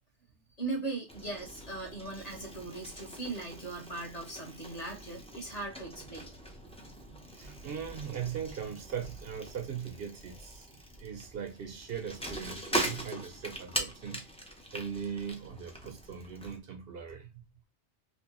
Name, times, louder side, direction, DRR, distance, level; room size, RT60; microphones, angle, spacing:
voice 1, 0.6-6.3, right 3 dB, 40° left, 1.4 m, -39 dB
Bicycle, 1.1-16.6, right 1 dB, 5° left, 0.5 m, -41 dB
voice 2, 7.1-14.2 14.7-17.4, right 7 dB, 65° right, 0.9 m, -40 dB
3.5 x 2.9 x 2.8 m
omnidirectional pair, 1.1 m